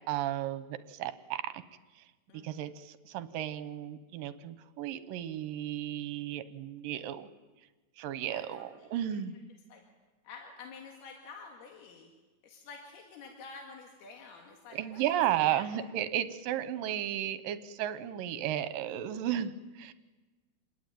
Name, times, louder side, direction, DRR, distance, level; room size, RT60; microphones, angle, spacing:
voice 1, 0.1-1.6 2.3-7.3 8.0-9.4 14.7-19.9, right 11 dB, 70° right, 13 dB, 2.5 m, -34 dB
voice 2, 8.3-9.2 9.7-9.8 10.2-12.1 12.4-15.2 15.5-15.7 16.7-17.0, left 5 dB, 90° left, 2 dB, 4.1 m, -49 dB
28.0 x 21.0 x 9.2 m, 1.2 s
omnidirectional pair, 4.4 m